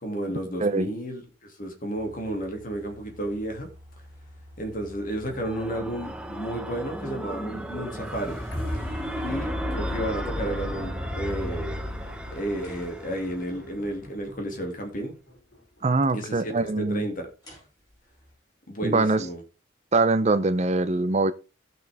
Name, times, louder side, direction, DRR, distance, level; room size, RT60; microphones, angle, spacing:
voice 1, 0.0-3.7 4.6-8.4 9.2-11.8 12.3-15.1 16.1-17.2 18.7-19.4, right 1 dB, 45° left, 2.4 m, -32 dB
sound 1, 1.9-13.7 17.4-18.3, equal, 20° left, 7.1 m, -49 dB
sound 2, 5.0-13.9, right 1 dB, 5° right, 0.9 m, -37 dB
sound 3, 7.7-15.8 16.3-16.4, left 1 dB, 80° left, 3.9 m, -35 dB
voice 2, 15.8-17.1 18.8-19.2 19.9-21.3, right 3 dB, 35° right, 0.6 m, -23 dB
16.5 x 6.2 x 3.5 m
head